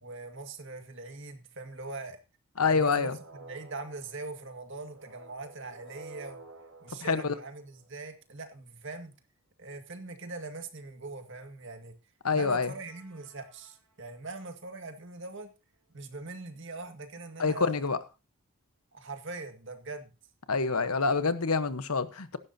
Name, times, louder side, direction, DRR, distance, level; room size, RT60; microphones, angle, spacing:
voice 1, 0.0-2.2 2.6-6.4 6.8-9.1 9.6-11.9 12.3-15.5 15.9-17.8 18.9-20.1, right 3 dB, 55° right, 2.0 m, -42 dB
voice 2, 2.6-3.1 7.0-7.3 12.2-12.7 17.4-18.0 20.5-22.4, left 4 dB, 80° left, 1.1 m, -26 dB
sound 1, 2.8-8.1 12.4-14.1, right 3 dB, 75° right, 3.7 m, -52 dB
16.5 x 12.0 x 2.8 m
head